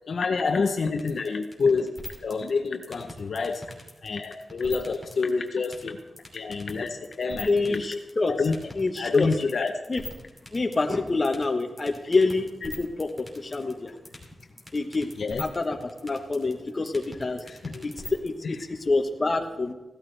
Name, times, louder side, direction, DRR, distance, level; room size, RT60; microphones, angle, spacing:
voice 1, 0.0-1.9 2.2-3.6 4.0-6.0 6.3-8.0 8.3-8.6 9.0-9.8 15.2-15.5 17.5-17.9 18.4-18.6, left 4 dB, 60° left, 5 dB, 0.7 m, -28 dB
sound 1, 1.0-18.3, left 1 dB, 10° right, 2.7 m, -41 dB
voice 2, 7.5-8.3 8.8-9.3 9.9-10.0 10.5-13.9 14.7-15.1 15.4-15.8 16.0-17.4 17.8-17.9 18.2-19.7, left 3 dB, 30° left, 4 dB, 1.1 m, -26 dB
16.5 x 13.0 x 3.3 m, 1.1 s
wide cardioid pair, 145°, 0 cm